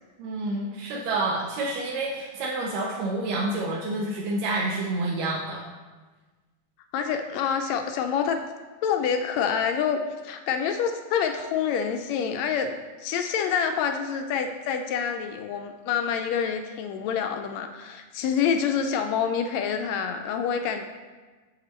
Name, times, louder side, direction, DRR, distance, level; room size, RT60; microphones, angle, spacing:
voice 1, 0.2-5.6, right 2 dB, 75° right, -3 dB, 1.8 m, -28 dB
voice 2, 6.9-8.4 8.8-12.7 13.0-20.8, left 7 dB, 80° left, 6 dB, 1.7 m, -27 dB
7.8 x 6.6 x 3.0 m, 1.3 s
omnidirectional pair, 3.4 m